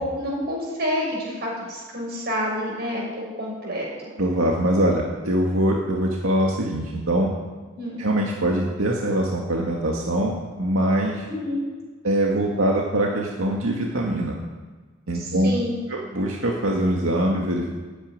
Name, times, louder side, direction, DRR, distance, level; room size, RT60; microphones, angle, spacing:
voice 1, 0.0-3.9 7.7-8.0 11.3-11.6 15.1-15.7, equal, 50° right, -2 dB, 6.7 m, -28 dB
voice 2, 4.2-7.3 8.0-11.3 12.0-14.4 15.1-15.5 15.9-17.7, right 1 dB, 90° right, -1 dB, 2.1 m, -23 dB
14.5 x 10.0 x 9.7 m, 1.4 s
head